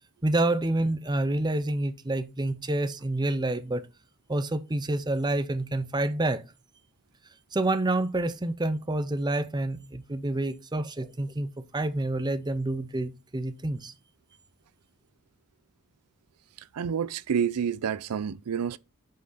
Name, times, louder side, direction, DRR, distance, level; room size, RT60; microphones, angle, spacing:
voice 1, 0.2-3.8 4.3-6.4 7.5-13.9, right 2 dB, 20° right, 0.6 m, -28 dB
voice 2, 16.6-18.8, right 7 dB, 85° right, 0.4 m, -29 dB
8.2 x 5.7 x 4.0 m
head